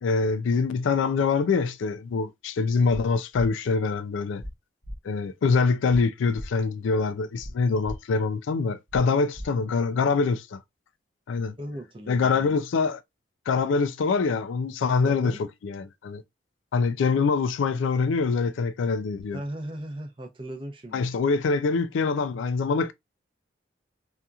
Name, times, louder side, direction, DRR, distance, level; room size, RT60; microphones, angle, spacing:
voice 1, 0.0-4.4 5.0-10.6 11.3-11.5 12.1-13.0 13.5-15.4 15.6-16.2 16.7-19.4 20.9-22.9, left 4 dB, 75° left, 0.3 m, -24 dB
sound 1, 4.4-4.5 4.8-5.0 5.9-6.0 6.3-6.5 7.4-7.5 7.8-8.0 8.9-9.0 9.3-9.5, equal, 25° left, 0.9 m, -37 dB
voice 2, 11.6-12.6 15.0-15.4 19.3-21.1, right 1 dB, 25° right, 0.6 m, -37 dB
2.8 x 2.4 x 2.3 m
head